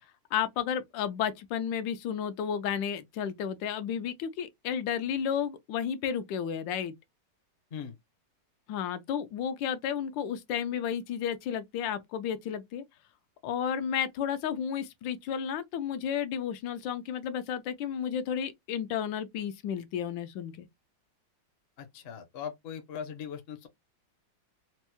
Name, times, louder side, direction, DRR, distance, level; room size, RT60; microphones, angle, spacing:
voice 1, 0.3-6.9 8.7-12.8 13.4-20.7, left 8 dB, 85° left, 1.3 m, -32 dB
voice 2, 21.8-23.7, left 8 dB, 55° left, 0.7 m, -40 dB
4.4 x 2.0 x 2.8 m
omnidirectional pair, 2.0 m